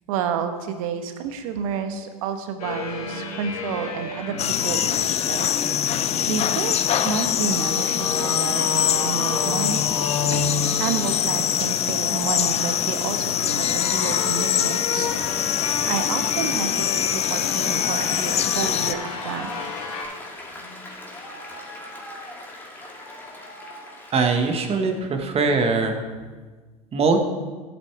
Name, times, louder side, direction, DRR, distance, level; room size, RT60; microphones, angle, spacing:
voice 1, 0.1-5.5 6.3-9.9 10.3-10.5 10.8-15.1 15.5-19.8, right 7 dB, 70° right, 8 dB, 1.2 m, -30 dB
sound 1, 2.6-20.0, left 4 dB, 80° left, 1.8 m, -31 dB
sound 2, 4.4-18.9, left 10 dB, 35° left, 0.6 m, -24 dB
Applause, 17.5-25.0, left 1 dB, 10° left, 2.6 m, -40 dB
voice 2, 24.1-26.0 26.9-27.2, right 4 dB, 35° right, 5 dB, 1.5 m, -21 dB
14.5 x 8.2 x 3.4 m, 1.4 s
hypercardioid pair, 85°, 19 cm